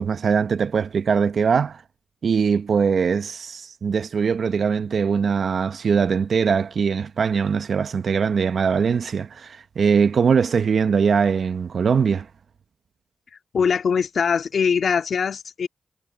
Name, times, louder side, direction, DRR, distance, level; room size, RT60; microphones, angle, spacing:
voice 1, 0.0-1.8 2.2-12.3, right 6 dB, 70° right, 1.1 m, -21 dB
voice 2, 13.5-15.7, left 6 dB, 70° left, 2.2 m, -22 dB
supercardioid pair, 40°, 0 cm